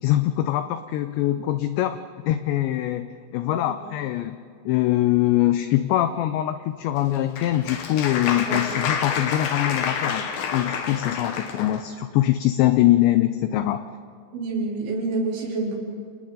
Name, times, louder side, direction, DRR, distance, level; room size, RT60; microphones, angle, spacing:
voice 1, 0.0-2.0 2.3-4.4 4.7-10.3 10.5-13.9, left 14 dB, 85° left, 10 dB, 2.5 m, -23 dB
Applause, 7.0-11.8, left 6 dB, 65° left, 2.5 m, -28 dB
voice 2, 14.3-15.8, right 3 dB, 70° right, -3 dB, 5.9 m, -27 dB
29.5 x 28.0 x 3.9 m, 2.1 s
omnidirectional pair, 5.9 m